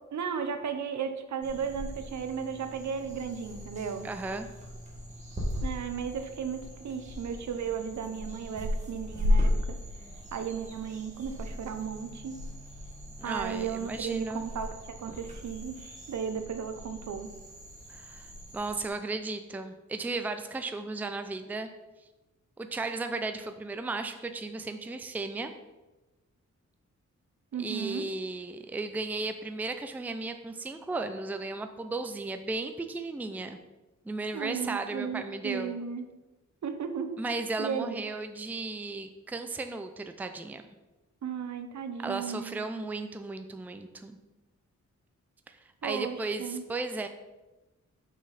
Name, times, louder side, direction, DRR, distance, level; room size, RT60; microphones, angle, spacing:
voice 1, 0.1-4.1 5.6-9.5 10.3-12.4 13.2-17.3 27.5-28.1 34.3-36.1 36.6-37.2 37.6-38.0 41.2-42.6 45.8-46.6, right 7 dB, 70° right, 8 dB, 0.7 m, -35 dB
sound 1, 1.4-18.9, left 1 dB, 25° right, 1.6 m, -36 dB
voice 2, 4.0-4.5 13.2-14.5 17.9-21.7 22.6-25.5 27.5-33.6 34.1-35.8 37.2-40.6 42.0-44.2 45.5-45.6 45.8-47.1, right 3 dB, 5° right, 7 dB, 0.4 m, -35 dB
6.2 x 6.0 x 4.1 m, 1.1 s
wide cardioid pair, 140°, 29 cm